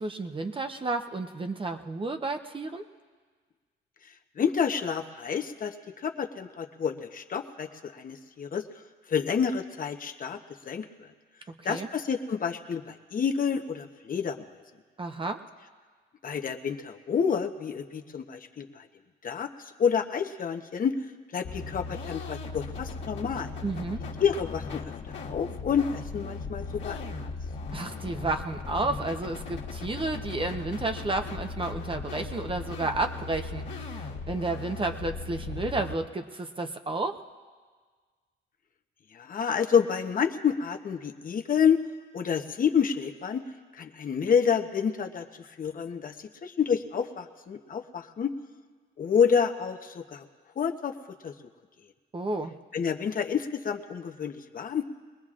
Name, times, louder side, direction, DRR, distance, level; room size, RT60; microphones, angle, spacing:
voice 1, 0.0-2.8 11.5-11.9 15.0-15.4 23.6-24.1 27.7-37.2 52.1-52.6, right 2 dB, 25° right, 6 dB, 0.9 m, -32 dB
voice 2, 4.4-8.6 9.1-10.4 10.7-10.8 11.6-14.4 16.2-18.9 19.2-19.5 19.8-20.9 21.3-23.5 24.2-24.8 25.3-27.0 39.1-41.8 42.1-43.4 43.7-46.1 46.4-48.3 49.0-50.2 50.6-50.9 51.2-51.3 52.7-54.9, left 7 dB, 45° left, 5 dB, 0.9 m, -28 dB
sound 1, 21.4-35.9, left 4 dB, 65° left, 1.6 m, -38 dB
23.0 x 19.5 x 2.5 m, 1.5 s
cardioid pair, 90°, 20 cm